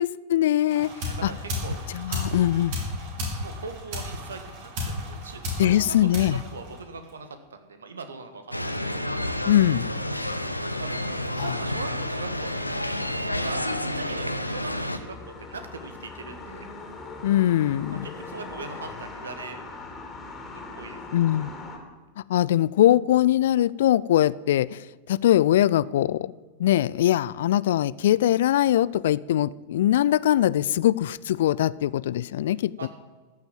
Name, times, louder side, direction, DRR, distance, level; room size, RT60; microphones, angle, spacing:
voice 1, 0.0-0.9 1.2-1.3 1.9-2.8 5.6-6.4 9.5-9.9 11.4-11.6 17.2-18.1 21.1-21.5 22.3-24.8 25.1-26.3 26.6-32.9, left 12 dB, 60° left, 21 dB, 0.3 m, -22 dB
sound 1, 0.7-7.2, left 1 dB, 50° right, 3.9 m, -33 dB
voice 2, 1.0-1.8 3.4-9.1 10.8-12.8 13.4-13.6 13.9-16.7 17.9-19.6 20.5-21.2 32.8-32.9, right 4 dB, 70° right, 9 dB, 1.4 m, -40 dB
sound 2, 8.5-15.0, left 1 dB, 90° left, 0.8 m, -29 dB
sound 3, 12.1-21.8, left 3 dB, 20° left, 2.7 m, -41 dB
14.5 x 7.0 x 7.6 m, 1.4 s
figure-of-eight pair, 90°, 0 cm